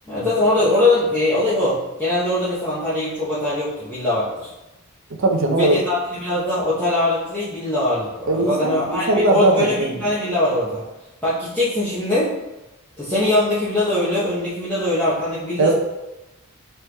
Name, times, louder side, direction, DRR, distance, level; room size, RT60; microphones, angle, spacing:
voice 1, 0.1-4.5 5.6-10.8 11.2-12.3 13.0-15.7, left 1 dB, 10° left, -12 dB, 0.7 m, -21 dB
voice 2, 5.2-5.8 8.3-10.0 15.6-15.7, right 2 dB, 60° right, 2 dB, 0.5 m, -19 dB
4.3 x 3.1 x 2.2 m, 1.0 s
head